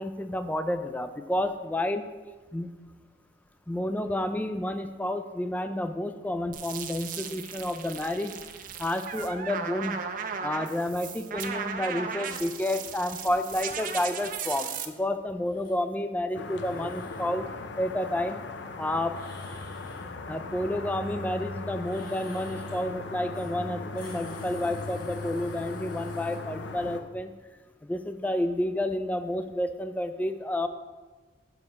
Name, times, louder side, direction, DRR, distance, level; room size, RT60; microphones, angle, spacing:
voice 1, 0.0-2.1 2.5-2.7 3.7-8.3 8.8-10.0 10.4-17.5 17.8-18.4 18.7-19.2 20.3-27.3 27.8-30.7, left 1 dB, 10° left, 9 dB, 0.3 m, -30 dB
sound 1, 6.5-14.9, right 6 dB, 50° right, 0.5 m, -36 dB
sound 2, 15.4-15.8 16.4-17.3 19.1-20.1 21.8-22.9 23.3-23.5 23.8-26.3, left 2 dB, 55° left, 1.8 m, -52 dB
sound 3, 16.3-27.0, left 3 dB, 80° left, 0.5 m, -38 dB
5.7 x 4.9 x 5.3 m, 1.3 s
head